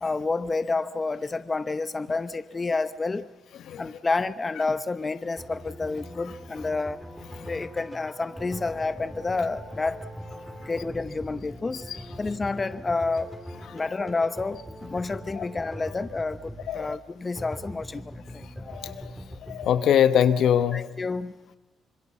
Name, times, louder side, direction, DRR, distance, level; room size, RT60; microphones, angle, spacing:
voice 1, 0.0-3.3 3.8-7.0 7.4-10.0 10.7-11.9 12.2-13.3 13.7-18.4 20.7-21.6, left 3 dB, 25° left, 13 dB, 0.8 m, -29 dB
sound 1, 5.4-19.8, equal, 5° right, 3.1 m, -41 dB
voice 2, 18.7-19.1 19.4-20.9, left 9 dB, 75° left, 11 dB, 1.1 m, -23 dB
25.5 x 22.5 x 7.2 m, 1.2 s
cardioid pair, 90°, 0 cm